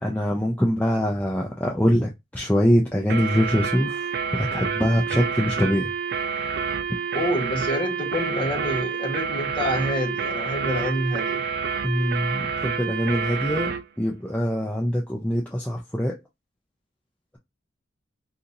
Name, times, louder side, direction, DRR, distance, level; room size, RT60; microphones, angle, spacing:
voice 1, 0.0-5.9 11.8-16.2, equal, 5° left, 0.5 m, -23 dB
sound 1, 3.1-13.9, right 6 dB, 55° right, 0.4 m, -28 dB
voice 2, 7.1-11.4, equal, 25° left, 1.0 m, -27 dB
2.8 x 2.7 x 3.8 m
head